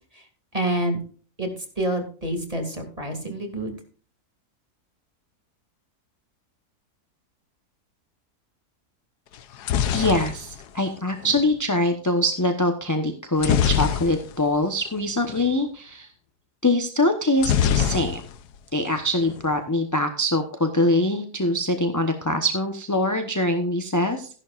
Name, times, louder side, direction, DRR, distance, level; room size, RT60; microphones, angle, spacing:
voice 1, 0.5-1.0 1.4-1.5 1.8-3.8, right 1 dB, 20° right, 4 dB, 2.8 m, -27 dB
sound 1, 9.3-11.5 13.4-14.6 14.9-15.0 15.2-15.5 17.4-18.6 18.9-19.5, left 9 dB, 90° left, 1.4 m, -24 dB
voice 2, 9.9-16.1 16.6-18.2 18.7-24.3, left 1 dB, 15° left, 5 dB, 0.9 m, -23 dB
14.5 x 11.5 x 2.5 m, 0.41 s
omnidirectional pair, 1.7 m